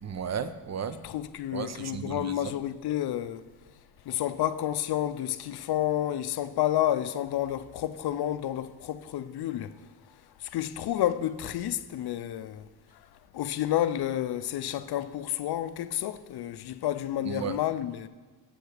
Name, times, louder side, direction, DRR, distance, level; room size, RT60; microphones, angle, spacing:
voice 1, 0.0-1.0 1.5-2.3 17.2-17.6, right 7 dB, 40° right, 0.5 m, -34 dB
voice 2, 1.0-3.5 4.1-9.8 10.4-12.6 13.3-18.1, left 12 dB, 60° left, 0.5 m, -30 dB
7.9 x 4.7 x 6.6 m
cardioid pair, 90°, 44 cm